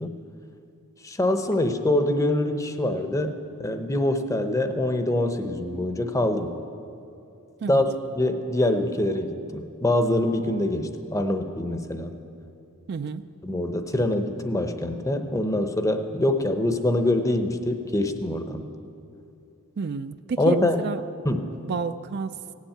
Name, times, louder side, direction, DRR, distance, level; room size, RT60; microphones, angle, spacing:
voice 1, 1.0-6.5 7.7-12.2 13.4-18.7 20.4-20.8 21.2-21.6, left 1 dB, 15° left, 7 dB, 0.7 m, -24 dB
voice 2, 12.9-13.2 19.8-21.1 21.7-22.4, right 5 dB, 50° right, 11 dB, 0.4 m, -30 dB
17.0 x 7.2 x 9.0 m, 2.7 s
head